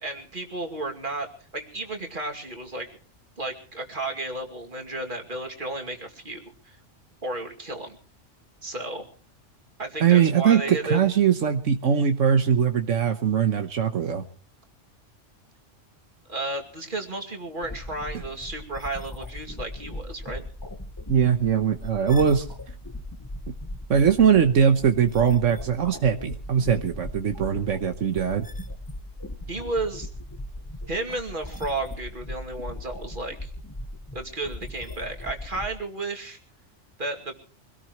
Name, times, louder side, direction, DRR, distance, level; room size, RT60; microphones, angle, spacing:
voice 1, 0.0-1.3 1.5-2.9 3.4-6.8 7.2-8.0 8.6-9.1 9.8-11.0 16.3-20.4 29.5-30.1 30.9-33.5 34.1-36.4 37.0-37.3, right 2 dB, 40° right, 3 dB, 2.7 m, -33 dB
voice 2, 10.0-14.2 21.1-22.5 23.9-28.5, right 7 dB, 80° right, 6 dB, 1.4 m, -21 dB
sound 1, 17.6-35.7, left 1 dB, 15° left, 1.2 m, -38 dB
24.5 x 18.0 x 3.1 m, 0.43 s
omnidirectional pair, 1.3 m